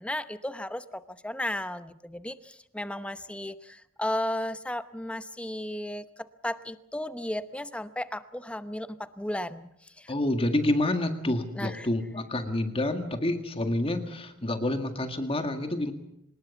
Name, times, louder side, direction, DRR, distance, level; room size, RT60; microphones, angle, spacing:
voice 1, 0.0-6.0 6.4-10.1 11.6-11.9, left 1 dB, 5° left, 12 dB, 0.9 m, -34 dB
voice 2, 10.1-15.9, left 1 dB, 25° left, 7 dB, 1.9 m, -28 dB
24.5 x 20.5 x 7.1 m, 0.78 s
head